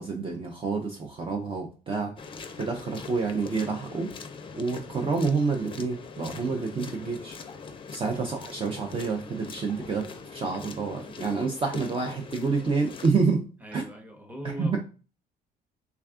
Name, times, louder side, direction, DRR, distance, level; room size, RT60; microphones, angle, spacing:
voice 1, 0.0-4.1 4.5-7.4 7.9-13.4 13.7-13.8 14.4-14.8, right 4 dB, 30° right, 0.6 m, -28 dB
sound 1, 2.2-13.1, left 5 dB, 30° left, 0.5 m, -42 dB
voice 2, 13.6-14.8, equal, 10° right, 0.9 m, -40 dB
3.4 x 2.3 x 3.6 m
cardioid pair, 110°, 17 cm